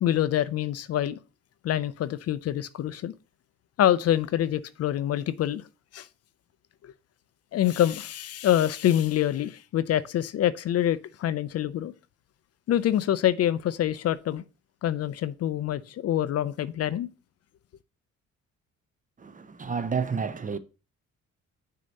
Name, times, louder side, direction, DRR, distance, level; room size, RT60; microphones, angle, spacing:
voice 1, 0.0-1.2 1.6-3.1 3.8-5.6 5.9-6.1 6.8-6.9 7.5-11.9 12.7-14.4 14.8-17.1, left 11 dB, 55° left, 0.4 m, -26 dB
voice 2, 19.2-20.6, right 5 dB, 25° right, 0.5 m, -30 dB
6.4 x 2.8 x 5.2 m
cardioid pair, 90°, 30 cm